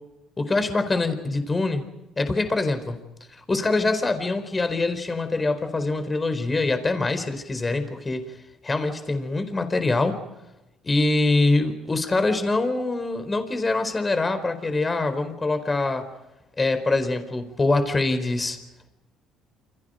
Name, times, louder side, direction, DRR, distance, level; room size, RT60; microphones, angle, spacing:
voice 1, 0.4-1.9 2.2-3.0 3.5-8.3 8.6-10.2 10.8-16.1 16.6-18.6, left 2 dB, 20° left, 9 dB, 4.7 m, -24 dB
29.0 x 28.0 x 5.3 m, 0.96 s
cardioid pair, 100°, 0 cm